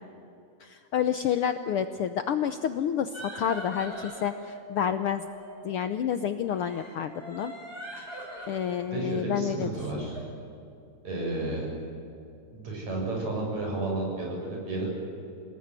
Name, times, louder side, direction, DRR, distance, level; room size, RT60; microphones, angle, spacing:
voice 1, 0.6-5.3 5.6-7.5 8.5-9.7 10.0-10.1, left 8 dB, 70° left, 9 dB, 1.4 m, -29 dB
sound 1, 3.1-5.8 6.5-10.3, equal, 20° right, 7.6 m, -43 dB
voice 2, 8.8-10.1 11.0-11.7 12.5-14.9, right 2 dB, 70° right, -1 dB, 8.7 m, -32 dB
27.0 x 20.0 x 9.7 m, 2.7 s
omnidirectional pair, 3.3 m